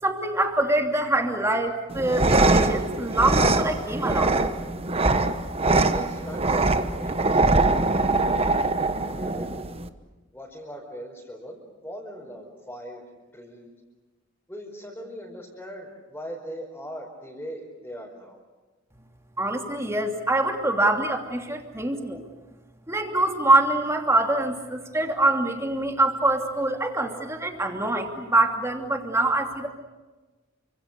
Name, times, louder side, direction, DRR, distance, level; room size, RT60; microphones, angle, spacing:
voice 1, 0.0-4.4 19.4-22.2 22.9-29.7, right 2 dB, 15° right, 3 dB, 2.8 m, -24 dB
sound 1, 1.9-9.9, right 2 dB, 30° right, 1.2 m, -23 dB
voice 2, 5.8-8.5 9.0-9.5 10.3-13.0 13.3-13.7 14.5-18.4, equal, 10° left, -4 dB, 4.8 m, -40 dB
29.5 x 26.0 x 6.8 m, 1.2 s
head